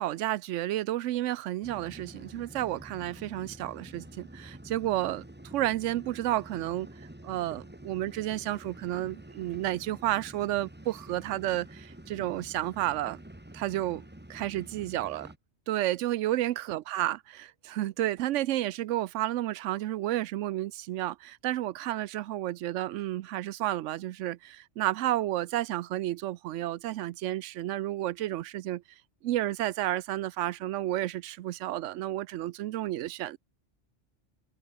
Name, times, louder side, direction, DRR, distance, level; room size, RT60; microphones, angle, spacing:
voice 1, 0.0-5.2 5.5-6.9 7.2-13.2 13.5-15.3 15.7-28.8 29.2-33.4, right 14 dB, 85° right, 0.9 m, -31 dB
sound 1, 1.6-15.4, right 1 dB, 10° right, 1.4 m, -48 dB
omnidirectional pair, 1.2 m